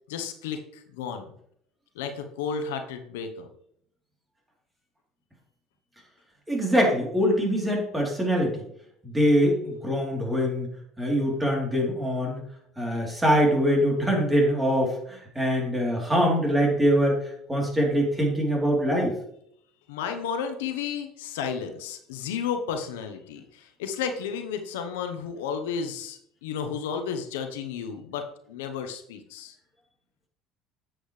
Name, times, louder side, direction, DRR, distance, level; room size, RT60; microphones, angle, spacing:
voice 1, 0.1-1.3 1.9-3.5 19.9-29.5, left 6 dB, 90° left, 6 dB, 0.9 m, -33 dB
voice 2, 6.5-8.6 9.0-10.7 11.0-12.4 12.8-17.2 17.5-19.1, equal, 10° right, -1 dB, 3.3 m, -23 dB
8.7 x 7.6 x 3.3 m, 0.69 s
supercardioid pair, 90°, 0 cm